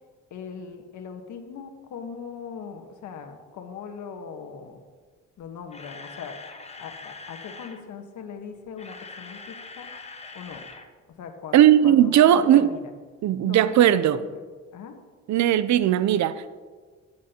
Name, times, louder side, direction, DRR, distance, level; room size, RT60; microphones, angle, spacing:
voice 1, 0.3-4.8 5.4-6.4 6.8-9.9 10.3-10.6 11.1-12.9 13.4-14.4 14.7-15.0, left 6 dB, 75° left, 4 dB, 1.4 m, -40 dB
Camera, 5.6-7.8 8.6-10.9 11.1-11.3 11.8-11.9, left 3 dB, 20° left, 1.0 m, -43 dB
voice 2, 11.5-12.7 13.2-14.2 15.3-16.6, right 11 dB, 70° right, 14 dB, 0.6 m, -18 dB
13.5 x 9.6 x 2.9 m, 1.5 s
cardioid pair, 90°, 30 cm